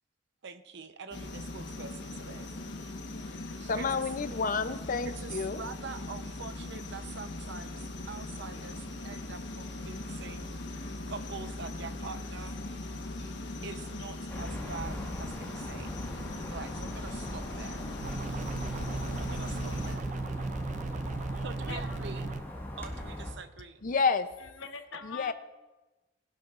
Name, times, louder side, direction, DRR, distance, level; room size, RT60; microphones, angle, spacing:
voice 1, 0.4-2.5 3.6-4.1 5.2-10.5 11.1-12.8 13.2-13.3 13.6-15.9 16.5-17.8 19.2-20.1 21.4-22.3 22.8-23.9, right 5 dB, 65° right, 10 dB, 0.8 m, -45 dB
sound 1, 1.1-20.0, left 2 dB, 65° left, 1.3 m, -40 dB
voice 2, 3.7-5.6 23.8-24.3 25.0-25.3, left 4 dB, 45° left, 11 dB, 0.6 m, -29 dB
sound 2, 14.3-23.3, equal, 10° left, 1.7 m, -40 dB
sound 3, 18.0-22.4, right 3 dB, 40° right, 0.4 m, -36 dB
voice 3, 21.3-22.0 23.6-23.7 24.4-25.3, left 6 dB, 85° left, 5 dB, 1.0 m, -43 dB
20.0 x 11.5 x 2.5 m, 1.1 s
head